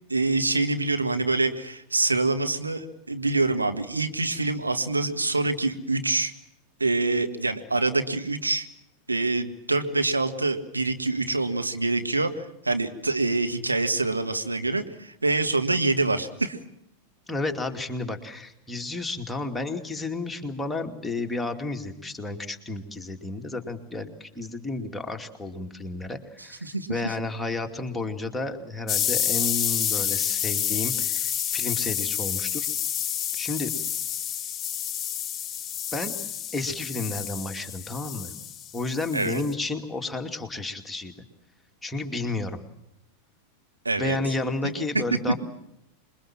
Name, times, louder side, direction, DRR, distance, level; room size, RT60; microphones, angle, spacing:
voice 1, 0.1-6.3 6.8-8.7 9.1-16.6 26.6-27.1 39.1-39.4 43.9-44.2 44.6-45.3, right 3 dB, 80° right, 7 dB, 1.8 m, -25 dB
voice 2, 17.3-32.7 33.3-33.7 35.9-36.2 36.5-38.3 38.7-41.1 41.8-42.6 44.0-45.3, left 2 dB, 5° left, 4 dB, 2.6 m, -32 dB
sound 1, 28.9-39.5, left 9 dB, 25° left, 1.3 m, -29 dB
27.0 x 22.5 x 7.5 m, 0.80 s
figure-of-eight pair, 90°, 0 cm